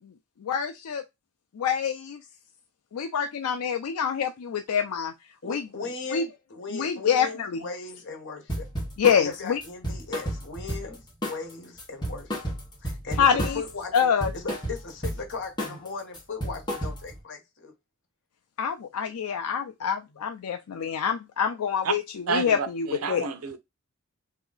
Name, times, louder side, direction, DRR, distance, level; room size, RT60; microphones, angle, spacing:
voice 1, 0.4-1.0 1.6-2.2 2.9-5.1 5.5-5.6 6.1-6.3 6.7-7.6 9.0-9.6 13.2-13.6 13.9-14.3 18.6-23.2, left 7 dB, 90° left, 0.4 m, -26 dB
voice 2, 5.4-8.7 9.2-12.5 12.8-17.7, left 4 dB, 55° left, 1.1 m, -38 dB
sound 1, 8.5-9.2 9.6-11.0 11.2-11.5 11.8-13.7 13.9-15.2 15.6-15.9 16.1-17.2, equal, 20° left, 1.4 m, -31 dB
voice 3, 22.3-23.6, right 5 dB, 90° right, 0.7 m, -29 dB
3.0 x 2.7 x 3.9 m
head